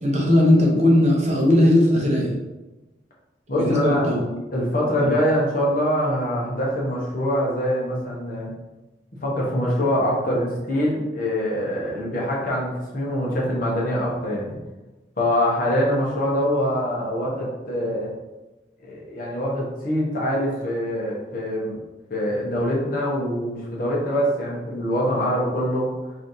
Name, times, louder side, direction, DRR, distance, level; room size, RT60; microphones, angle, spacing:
voice 1, 0.0-2.3 3.5-4.2 4.7-5.1, left 1 dB, 35° right, -2 dB, 0.7 m, -18 dB
voice 2, 3.5-4.0 4.5-8.5 9.2-14.6 15.2-18.1 18.8-21.8 22.1-25.9, equal, 45° left, -4 dB, 0.9 m, -24 dB
3.2 x 2.7 x 3.9 m, 1.1 s
head